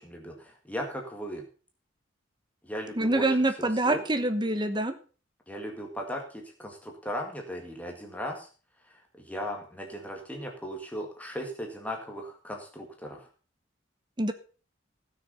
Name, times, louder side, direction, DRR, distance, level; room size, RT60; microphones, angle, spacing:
voice 1, 0.0-1.4 2.6-4.0 5.5-8.5 8.9-13.3, equal, 10° left, 2 dB, 1.9 m, -37 dB
voice 2, 3.0-4.9 14.2-14.3, right 2 dB, 25° right, 10 dB, 1.0 m, -25 dB
16.0 x 6.6 x 5.5 m, 0.37 s
head